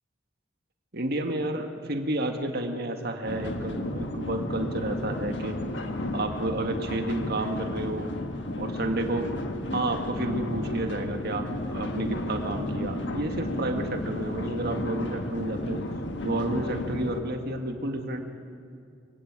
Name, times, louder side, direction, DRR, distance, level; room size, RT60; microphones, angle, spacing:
voice 1, 0.9-5.6 6.1-8.1 8.6-9.3 9.7-15.8 16.2-18.2, right 1 dB, 55° right, 4 dB, 2.0 m, -31 dB
sound 1, 3.3-17.2, left 1 dB, 65° left, 1.6 m, -33 dB
25.5 x 16.5 x 9.1 m, 2.3 s
head